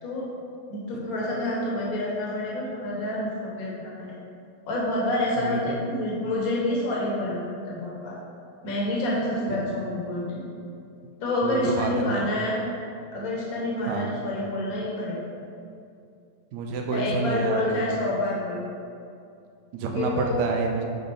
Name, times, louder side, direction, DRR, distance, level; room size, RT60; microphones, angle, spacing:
voice 1, 0.7-4.2 4.7-8.2 8.6-10.5 11.2-12.6 13.1-15.2 16.9-18.7 19.9-20.3, left 1 dB, 60° left, -4 dB, 1.5 m, -28 dB
voice 2, 5.4-5.8 11.4-12.3 13.9-14.1 16.5-17.9 19.7-20.8, right 4 dB, 85° right, 2 dB, 1.2 m, -28 dB
8.3 x 3.8 x 3.3 m, 2.4 s
omnidirectional pair, 1.8 m